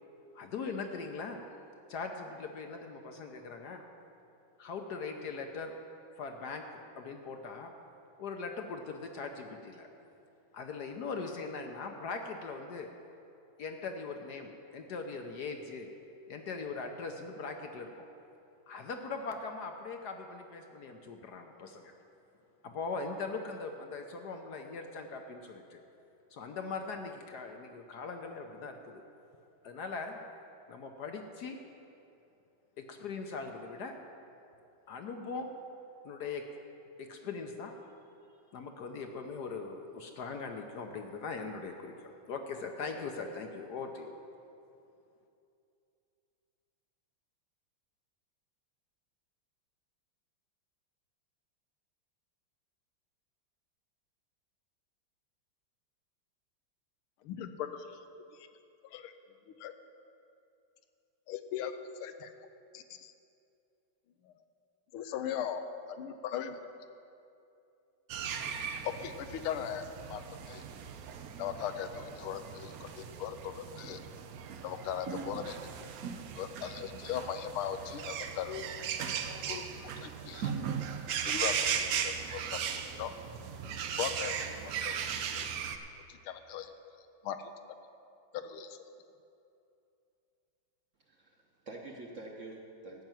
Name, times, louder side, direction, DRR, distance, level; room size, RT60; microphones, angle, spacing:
voice 1, 0.3-1.4 1.9-3.8 4.6-5.8 6.2-6.7 7.0-7.7 8.2-9.9 10.5-12.9 13.6-15.9 16.3-18.1 18.7-21.9 22.6-25.8 26.3-29.0 29.6-30.2 30.7-31.6 32.8-33.9 34.9-35.5 36.0-36.4 37.0-37.7 38.5-44.1, left 4 dB, 65° left, 4 dB, 1.1 m, -40 dB
voice 2, 57.2-58.0 58.3-58.5 58.8-59.1 59.6-59.7 61.3-62.3 62.7-63.1 64.2-64.3 64.9-66.6 68.8-70.2 70.5-70.6 71.4-74.0 74.6-75.6 76.3-78.6 79.5-79.7 80.0-80.5 81.2-82.6 83.0-83.1 84.0-84.9 85.3-85.5 86.1-86.7 87.2-87.5 88.3-88.8, left 9 dB, 90° left, 8 dB, 1.6 m, -39 dB
sound 1, 68.1-85.8, right 7 dB, 85° right, 0.8 m, -37 dB
voice 3, 91.0-93.0, right 2 dB, 45° right, 0 dB, 1.1 m, -47 dB
13.5 x 5.9 x 9.0 m, 2.7 s
omnidirectional pair, 2.3 m